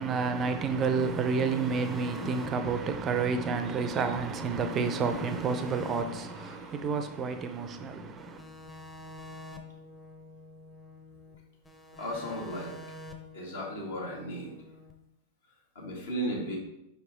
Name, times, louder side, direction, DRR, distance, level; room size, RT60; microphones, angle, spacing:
voice 1, 0.0-8.4, right 5 dB, 25° right, 0.5 m, -30 dB
sound 1, 1.0-4.2 4.5-7.8 8.2-11.4 11.7-14.9, left 2 dB, 10° left, 0.7 m, -48 dB
voice 2, 6.2-6.7 12.0-12.7 13.3-14.5 15.7-16.6, equal, 65° left, 1.6 m, -36 dB
5.3 x 4.7 x 3.7 m
figure-of-eight pair, 90°, 0 cm